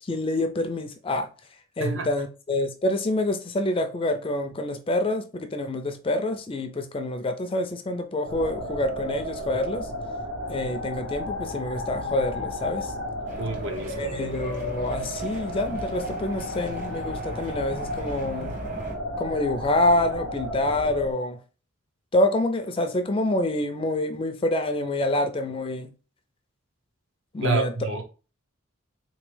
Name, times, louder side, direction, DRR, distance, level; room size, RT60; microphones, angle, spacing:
voice 1, 0.0-1.3 1.8-9.9 10.5-12.9 14.0-18.6 19.2-21.4 22.1-25.9 27.3-27.7, left 1 dB, 25° left, 0.4 m, -27 dB
sound 1, 8.3-21.1, left 1 dB, 80° right, 1.5 m, -33 dB
sound 2, 13.3-18.9, equal, 35° right, 1.1 m, -39 dB
voice 2, 13.4-14.2 27.4-28.0, right 3 dB, 60° right, 0.8 m, -28 dB
3.9 x 3.0 x 3.2 m
head